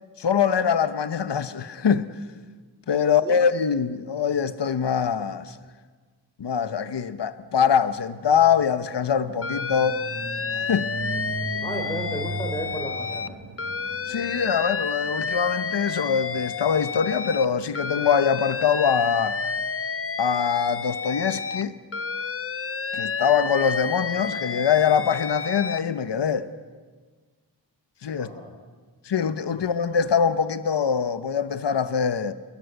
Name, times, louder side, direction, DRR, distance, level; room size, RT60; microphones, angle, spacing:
voice 1, 0.2-2.1 2.9-5.6 6.4-10.0 10.5-10.9 14.0-19.4 20.2-21.7 22.9-26.5 28.0-28.3 29.0-32.3, left 7 dB, 65° left, 1.1 m, -23 dB
voice 2, 3.0-3.4 11.6-13.3 28.1-28.5, equal, 10° left, 3.9 m, -33 dB
sound 1, 7.6-17.5, right 4 dB, 35° right, 1.2 m, -39 dB
Alarm, 9.4-13.3 13.6-17.5 17.7-21.6 21.9-25.8, left 5 dB, 30° left, 0.7 m, -30 dB
28.5 x 21.0 x 8.0 m
wide cardioid pair, 115°, 44 cm